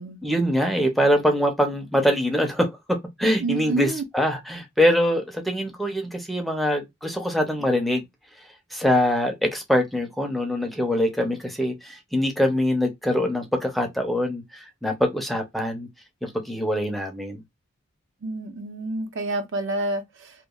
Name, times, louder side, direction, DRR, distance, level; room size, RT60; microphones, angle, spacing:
voice 1, 0.2-8.0 8.7-15.9 16.2-17.4, equal, ahead, 0.5 m, -24 dB
voice 2, 3.4-4.0 18.2-20.3, right 2 dB, 65° right, 0.6 m, -28 dB
2.9 x 2.2 x 2.2 m
head